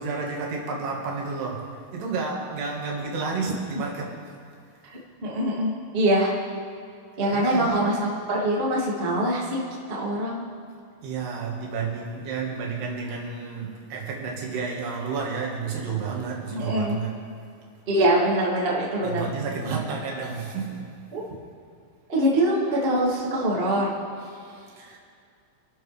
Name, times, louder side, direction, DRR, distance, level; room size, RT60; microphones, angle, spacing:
voice 1, 0.0-4.2 7.3-8.1 11.0-17.2 19.0-20.9 24.3-25.0, right 5 dB, 60° right, -2 dB, 3.4 m, -31 dB
voice 2, 5.2-6.3 7.2-8.0 8.3-9.6 9.9-10.4 16.5-17.0 17.9-19.3 21.1-21.2 22.1-23.9, right 1 dB, 30° right, -6 dB, 1.0 m, -23 dB
28.0 x 12.0 x 3.4 m, 2.3 s
omnidirectional pair, 5.9 m